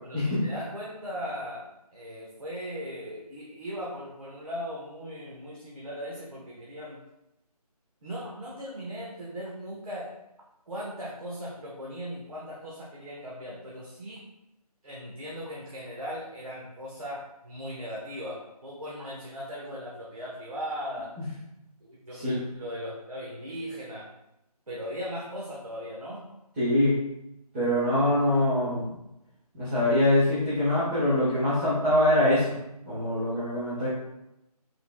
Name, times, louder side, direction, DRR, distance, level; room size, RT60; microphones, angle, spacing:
voice 1, 0.1-7.0 8.0-10.1 10.7-14.2 14.8-21.1 21.8-24.1 24.7-26.3, equal, 60° right, -5 dB, 1.2 m, -38 dB
voice 2, 22.1-22.4 26.6-27.0 27.5-28.9 29.5-32.5 32.9-33.9, left 1 dB, 15° right, -13 dB, 1.1 m, -24 dB
5.6 x 3.9 x 2.3 m, 0.89 s
figure-of-eight pair, 155°, 20 cm